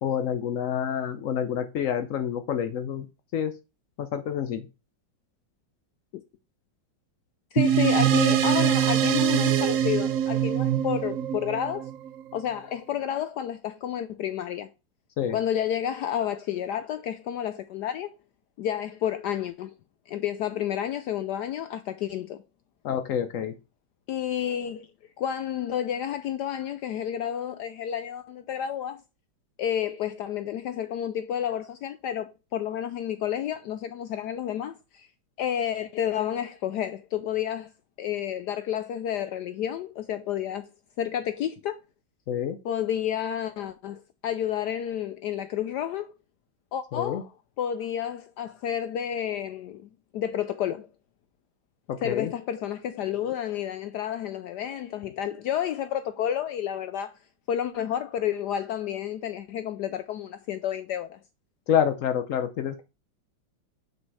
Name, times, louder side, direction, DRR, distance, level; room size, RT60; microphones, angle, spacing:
voice 1, 0.0-3.1 3.3-3.5 4.0-4.6 15.2-15.4 22.8-23.5 42.3-42.6 46.9-47.2 51.9-52.3 61.7-62.8, left 9 dB, 90° left, 0.7 m, -28 dB
voice 2, 7.5-11.9 12.3-14.7 15.3-18.1 18.6-19.7 20.1-22.4 24.1-24.9 25.2-29.0 29.6-35.1 35.4-37.7 38.0-40.7 41.0-41.8 42.6-46.1 46.7-50.9 52.0-57.1 57.5-61.2, left 10 dB, 75° left, 1.0 m, -30 dB
sound 1, 7.6-12.4, right 10 dB, 90° right, 0.7 m, -23 dB
6.1 x 5.3 x 4.6 m
omnidirectional pair, 2.2 m